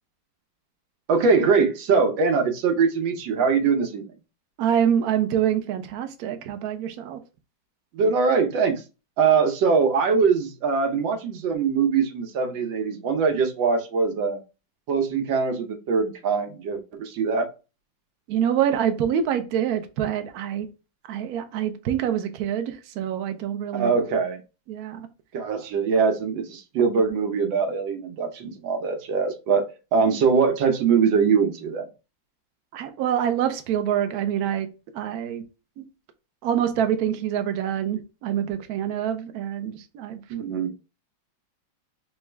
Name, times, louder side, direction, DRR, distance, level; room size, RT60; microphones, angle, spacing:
voice 1, 1.1-4.0 7.9-8.8 9.2-14.4 14.9-17.5 23.7-24.4 25.3-29.6 29.9-31.9 40.3-40.7, right 5 dB, 90° right, 1.5 m, -22 dB
voice 2, 4.6-7.2 18.3-20.7 21.1-24.0 24.7-25.1 32.7-34.7 34.9-35.4 35.8-35.9 36.4-40.2, right 9 dB, 65° right, 1.0 m, -26 dB
4.1 x 2.3 x 3.3 m
omnidirectional pair, 2.0 m